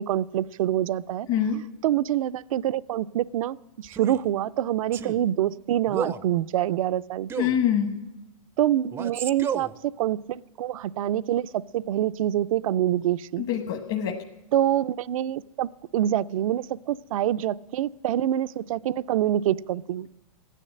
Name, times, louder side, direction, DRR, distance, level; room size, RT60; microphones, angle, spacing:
voice 1, 0.0-1.3 1.8-7.3 8.6-9.7 10.0-13.4 14.5-20.1, right 12 dB, 70° right, 15 dB, 0.4 m, -26 dB
voice 2, 1.3-1.6 7.4-7.9 13.4-14.1, left 9 dB, 40° left, 4 dB, 1.3 m, -25 dB
Male speech man speaking, 3.9-4.2 4.9-5.2 5.9-6.3 7.3-7.6 8.9-9.7, right 7 dB, 15° right, 0.4 m, -32 dB
15.0 x 10.0 x 7.5 m, 1.1 s
hypercardioid pair, 130°, 18 cm